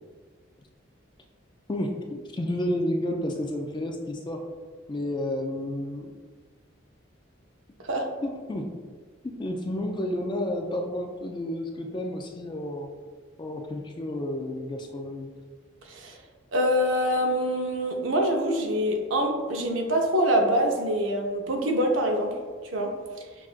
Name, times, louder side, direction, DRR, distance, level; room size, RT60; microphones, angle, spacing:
voice 1, 1.7-4.4 4.9-6.1 8.2-8.7 9.2-12.9 13.4-15.3, left 1 dB, 20° left, 3 dB, 0.3 m, -31 dB
voice 2, 15.8-16.2 16.5-22.3 22.7-22.9, equal, 70° right, 2 dB, 0.6 m, -25 dB
6.0 x 2.4 x 2.4 m, 1.5 s
head